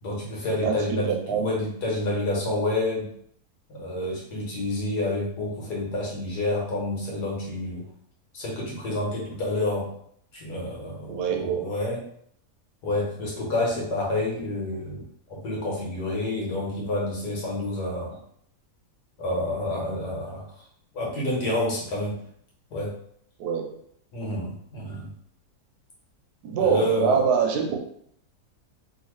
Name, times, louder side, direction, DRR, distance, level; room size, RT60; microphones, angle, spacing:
voice 1, 0.0-3.1 3.7-7.9 8.3-9.9 10.3-12.0 12.8-15.0 15.3-18.2 19.2-20.4 20.9-22.2 22.7-22.9 24.1-25.1 26.6-27.2, left 1 dB, 75° left, -3 dB, 1.6 m, -28 dB
voice 2, 0.6-1.5 11.1-11.6 23.4-23.7 26.4-27.8, right 6 dB, 80° right, 3 dB, 1.2 m, -24 dB
3.0 x 2.8 x 3.0 m, 0.66 s
omnidirectional pair, 1.8 m